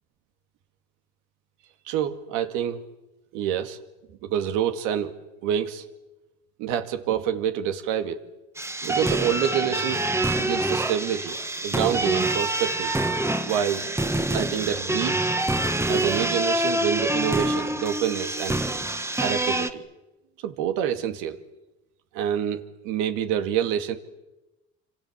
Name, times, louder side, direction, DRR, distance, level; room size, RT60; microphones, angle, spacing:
voice 1, 1.9-2.8 3.3-3.8 4.2-5.1 5.4-5.8 6.6-8.2 8.8-10.0 10.4-11.4 11.6-12.9 13.4-13.8 14.3-15.2 15.9-18.6 19.2-19.8 20.4-21.4 22.1-24.0, right 9 dB, 80° right, 7 dB, 2.4 m, -27 dB
sound 1, 8.6-19.7, right 1 dB, 10° right, 1.7 m, -26 dB
27.5 x 26.5 x 7.5 m, 1.0 s
supercardioid pair, 80°, 31 cm